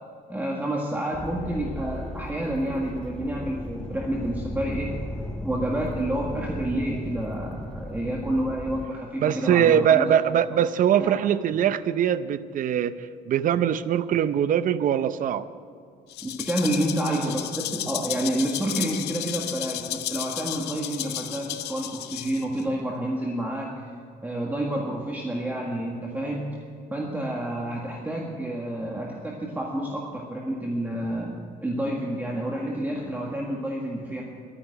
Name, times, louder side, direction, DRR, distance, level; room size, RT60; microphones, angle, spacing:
voice 1, 0.3-4.9 5.4-10.1 11.0-11.1 16.2-23.8 24.2-26.4 26.9-31.3 31.6-34.2, right 1 dB, 10° right, -2 dB, 1.7 m, -29 dB
sound 1, 1.1-8.9, left 1 dB, 5° left, 0.6 m, -36 dB
voice 2, 9.2-12.9 13.3-15.5, right 9 dB, 50° right, 14 dB, 0.6 m, -22 dB
Rattle (instrument), 16.1-22.6, left 14 dB, 80° left, 0.7 m, -33 dB
12.0 x 9.9 x 7.8 m, 2.4 s
cardioid pair, 110°, 17 cm